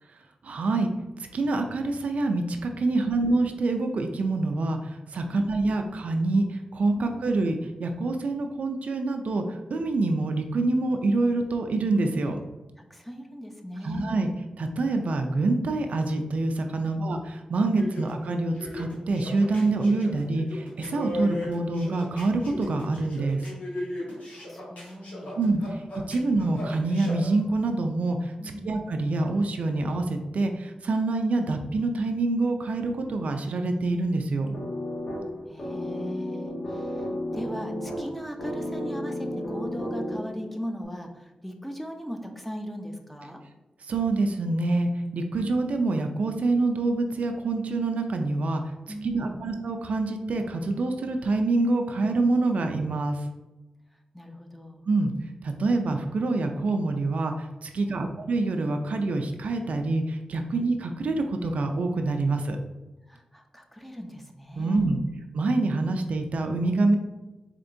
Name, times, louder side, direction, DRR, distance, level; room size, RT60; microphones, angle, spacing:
voice 1, 0.4-0.9 1.3-12.4 13.8-14.3 14.6-23.4 25.4-25.8 26.1-28.3 28.7-34.5 43.9-48.6 49.0-53.3 54.9-55.1 55.4-62.6 64.6-65.0 65.3-67.0, right 2 dB, 75° right, 5 dB, 0.4 m, -26 dB
voice 2, 2.9-3.3 5.3-5.5 7.0-7.3 12.8-14.3 16.8-17.0 17.7-18.0 24.3-25.3 28.4-28.8 35.5-37.1 37.3-43.4 48.9-49.5 54.1-54.9 57.7-58.2 60.5-60.6 63.1-65.1, equal, 5° left, 3 dB, 0.6 m, -39 dB
sound 1, 17.7-27.3, left 1 dB, 90° left, 1.2 m, -37 dB
sound 2, 34.5-40.5, left 1 dB, 70° left, 1.0 m, -33 dB
4.3 x 2.8 x 2.6 m, 1.0 s
cardioid pair, 50°, 2 cm